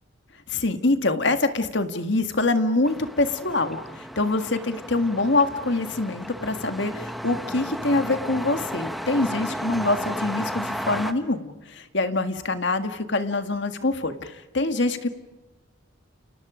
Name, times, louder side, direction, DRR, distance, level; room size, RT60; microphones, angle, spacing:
voice 1, 0.5-15.1, left 2 dB, 60° left, 8 dB, 1.9 m, -25 dB
sound 1, 2.8-11.1, equal, ahead, 1.1 m, -34 dB
30.0 x 30.0 x 5.1 m, 1.1 s
head